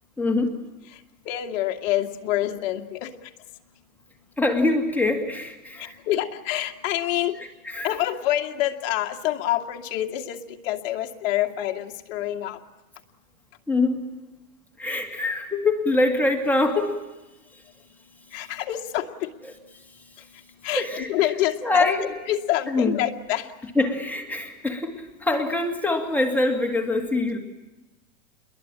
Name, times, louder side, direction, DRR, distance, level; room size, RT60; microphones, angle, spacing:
voice 1, 0.2-0.6 4.4-6.0 7.6-7.9 13.7-14.0 14.8-17.0 17.5-17.6 20.8-21.1 21.6-22.1 22.7-22.9 23.8-27.4, left 2 dB, 5° left, 2 dB, 2.2 m, -24 dB
voice 2, 1.3-3.1 5.8-7.3 7.8-12.6 18.3-19.3 20.6-21.9 22.3-23.5, left 13 dB, 45° left, 5 dB, 2.3 m, -27 dB
29.0 x 22.5 x 8.9 m, 1.0 s
supercardioid pair, 155°, 43 cm